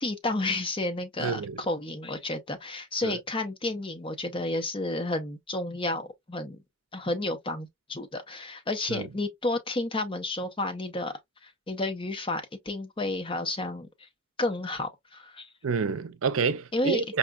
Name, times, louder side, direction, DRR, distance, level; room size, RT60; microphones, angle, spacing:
voice 1, 0.0-6.6 6.9-11.1 11.4-14.1 14.4-15.5 16.7-17.0, left 2 dB, 25° left, 0.7 m, -31 dB
voice 2, 1.2-1.6 3.0-3.2 8.9-9.1 15.6-17.2, right 5 dB, 75° right, 0.5 m, -28 dB
5.0 x 2.3 x 2.3 m
head